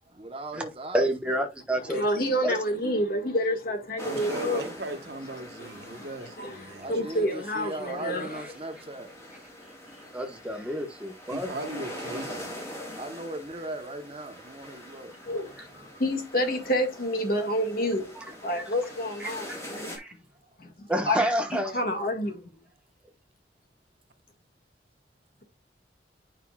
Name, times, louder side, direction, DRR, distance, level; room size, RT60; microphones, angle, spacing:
voice 1, 0.1-1.0 6.8-9.2 13.0-15.2 20.5-20.9, right 1 dB, 30° right, 1.0 m, -38 dB
voice 2, 0.9-2.0 2.4-2.5 10.1-11.5 18.2-18.3 18.5-18.6 19.2-19.3 20.0-20.1 20.9-21.8, right 1 dB, 5° right, 1.2 m, -28 dB
voice 3, 1.9-4.7 5.6-8.4 15.3-18.1 18.4-20.0 20.6-20.7 21.1-21.2 21.7-22.4, equal, 50° left, 1.8 m, -29 dB
sound 1, 4.0-20.0, equal, 15° left, 2.7 m, -43 dB
voice 4, 4.0-6.9 11.3-12.5, right 2 dB, 60° right, 1.3 m, -38 dB
9.3 x 5.5 x 2.4 m
head